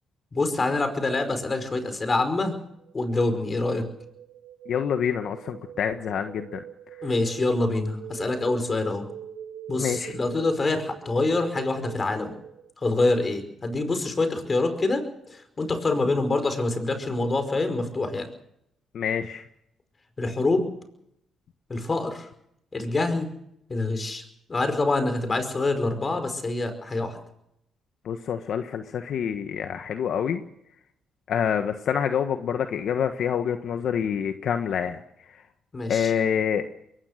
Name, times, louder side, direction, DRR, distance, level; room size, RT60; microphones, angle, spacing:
voice 1, 0.3-2.5 2.9-3.9 7.0-9.0 9.7-12.3 12.8-15.0 15.3-18.3 20.2-20.7 21.7-22.3 22.7-23.3 23.7-24.2 24.5-27.2 35.7-36.1, left 2 dB, 30° left, 9 dB, 5.1 m, -26 dB
sound 1, 2.8-12.7, right 9 dB, 80° right, 6.4 m, -43 dB
voice 2, 4.7-6.6 9.8-10.2 18.9-19.4 28.0-30.4 31.3-35.0 35.9-36.6, left 8 dB, 65° left, 7 dB, 1.4 m, -27 dB
22.5 x 19.5 x 6.6 m, 0.76 s
cardioid pair, 90°, 0 cm